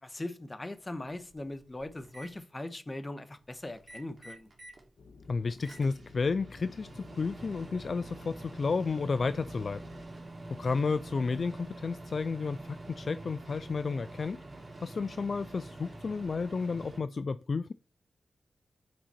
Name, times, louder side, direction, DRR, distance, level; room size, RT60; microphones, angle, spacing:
voice 1, 0.0-4.5, left 1 dB, 30° left, 1.2 m, -40 dB
Microwave oven, 0.8-0.9 1.3-2.3 3.7-4.8 5.2-17.0, right 2 dB, 45° right, 2.5 m, -46 dB
sound 1, 5.0-10.0, left 4 dB, 80° left, 1.3 m, -54 dB
voice 2, 5.3-9.8 10.5-14.4 14.8-17.7, left 4 dB, 60° left, 0.3 m, -32 dB
7.5 x 4.9 x 4.4 m
cardioid pair, 45°, 0 cm